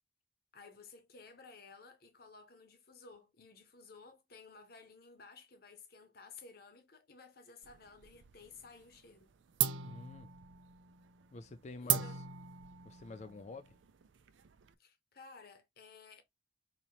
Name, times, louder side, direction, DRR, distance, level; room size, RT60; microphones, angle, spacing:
voice 1, 0.5-9.3 11.8-12.2 14.8-16.2, left 4 dB, 50° left, 0.9 m, -55 dB
sound 1, 7.6-8.5 8.8-9.2 9.6-14.7, right 10 dB, 75° right, 0.5 m, -38 dB
voice 2, 9.8-10.3 11.3-12.2 12.8-13.8, left 3 dB, 35° left, 0.3 m, -48 dB
4.2 x 2.8 x 2.9 m
head